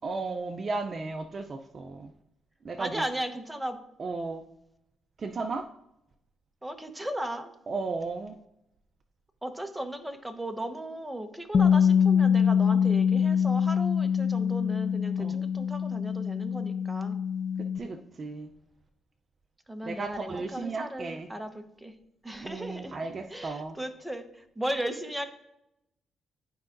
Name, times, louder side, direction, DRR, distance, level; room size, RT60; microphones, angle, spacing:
voice 1, 0.0-2.1 2.6-3.0 4.0-4.4 5.2-5.7 7.7-8.3 15.2-15.3 17.6-18.5 19.8-21.3 22.4-23.8, right 3 dB, 40° right, 6 dB, 0.5 m, -35 dB
voice 2, 2.8-3.8 6.6-7.5 9.4-17.2 19.7-21.9 22.2-23.0 23.3-25.2, right 1 dB, 5° right, 6 dB, 0.9 m, -36 dB
Bass guitar, 11.5-17.8, left 7 dB, 55° left, 0.5 m, -24 dB
12.0 x 4.7 x 2.6 m, 0.81 s
cardioid pair, 90°, 0 cm